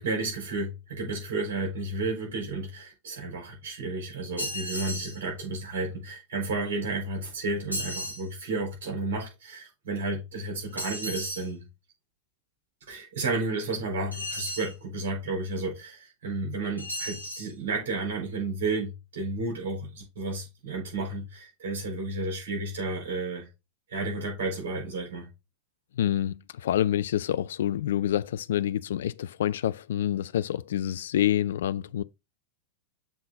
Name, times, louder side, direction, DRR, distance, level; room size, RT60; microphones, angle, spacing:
voice 1, 0.0-11.6 12.9-23.5 23.9-25.3, right 3 dB, 55° right, 4.5 m, -32 dB
sound 1, 4.4-5.2 7.7-8.2 10.8-11.5 14.1-14.7 16.8-17.5, equal, 90° left, 1.5 m, -34 dB
voice 2, 25.9-32.0, left 11 dB, 60° left, 0.3 m, -27 dB
7.2 x 3.8 x 3.8 m
figure-of-eight pair, 90°, 0 cm